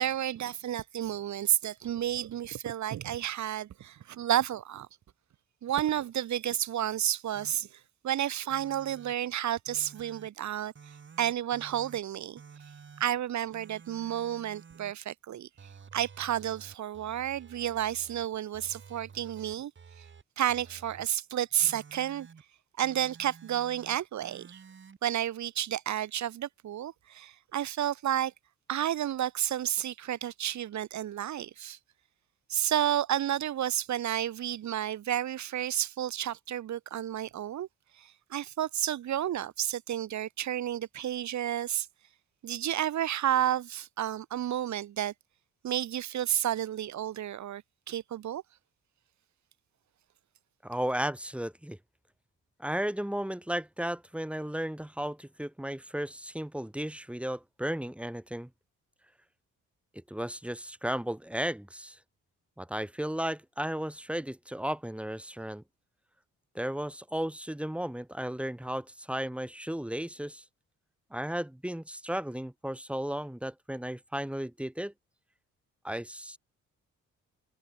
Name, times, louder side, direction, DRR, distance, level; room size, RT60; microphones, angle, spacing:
voice 1, 0.0-4.9 5.6-7.7 8.0-10.7 11.2-12.4 13.0-15.5 15.9-19.7 20.0-20.1 20.4-22.3 22.8-24.6 25.0-28.3 28.7-31.8 32.5-37.7 38.0-41.9 42.4-45.1 45.6-48.4, right 11 dB, 65° right, 2.6 m, -31 dB
Droid Speak, 7.3-7.5 8.5-9.1 9.7-10.3 10.7-12.0 12.4-13.0 13.5-14.9 15.6-18.2 18.5-20.2 20.5-21.1 21.6-22.4 22.8-24.0 24.2-25.0, right 6 dB, 40° right, 4.4 m, -52 dB
voice 2, 50.6-51.8 52.6-58.5 59.9-62.0 62.6-65.6 66.6-70.4 71.1-74.9 75.8-76.4, right 1 dB, 5° right, 3.6 m, -34 dB
cardioid pair, 90°, 30 cm